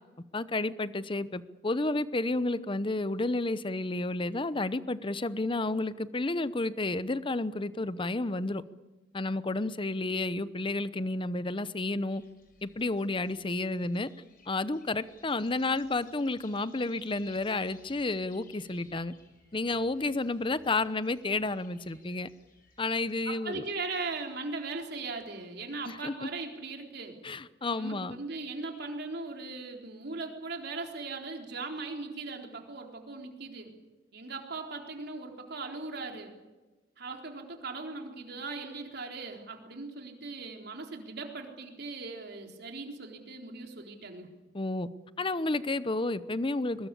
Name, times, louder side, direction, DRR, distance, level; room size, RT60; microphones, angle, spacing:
voice 1, 0.3-8.6 9.1-12.2 12.6-14.1 14.5-19.1 19.5-22.3 22.8-23.6 25.8-26.1 27.2-28.2 44.5-44.9 45.2-46.9, left 2 dB, 30° left, 15 dB, 0.8 m, -31 dB
sound 1, 12.1-23.2, left 4 dB, 50° left, 5.8 m, -60 dB
voice 2, 23.3-27.2 27.8-33.7 34.1-36.3 37.0-44.3, right 3 dB, 60° right, 3 dB, 4.0 m, -39 dB
22.5 x 20.5 x 8.5 m, 1.2 s
head